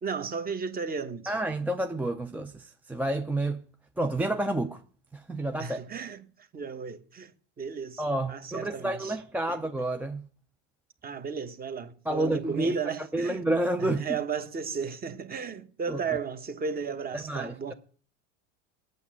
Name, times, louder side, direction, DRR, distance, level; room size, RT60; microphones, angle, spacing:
voice 1, 0.0-1.3 5.6-6.2 6.5-7.3 7.6-8.0 8.3-9.2 9.5-9.6 11.0-13.4 13.8-17.7, right 6 dB, 25° right, 1.2 m, -34 dB
voice 2, 1.3-3.6 4.0-4.8 5.1-5.8 8.0-10.3 12.1-14.2 15.9-16.0 17.1-17.7, right 1 dB, 5° right, 0.4 m, -30 dB
8.5 x 7.6 x 8.1 m
supercardioid pair, 125°, 38 cm